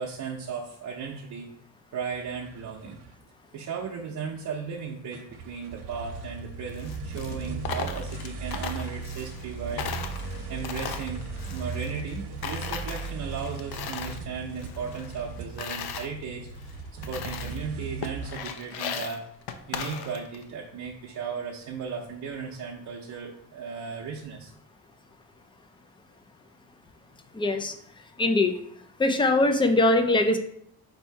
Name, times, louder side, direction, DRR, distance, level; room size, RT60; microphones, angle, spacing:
voice 1, 0.0-1.5 1.9-3.0 3.5-19.3 19.7-24.5, right 6 dB, 50° right, -1 dB, 0.7 m, -36 dB
sound 1, 2.0-3.1 3.8-3.9 5.1-18.4, right 4 dB, 85° right, 0.8 m, -37 dB
Coin (dropping), 6.7-9.5 9.8-12.2 12.4-14.2 14.6-16.1 16.6-16.7 17.0-17.7 18.0-20.4, left 7 dB, 70° left, 0.6 m, -37 dB
voice 2, 27.3-27.7 28.2-28.5 29.0-30.4, left 2 dB, 15° left, 7 dB, 0.4 m, -21 dB
4.3 x 2.7 x 4.5 m, 0.69 s
cardioid pair, 115°, 39 cm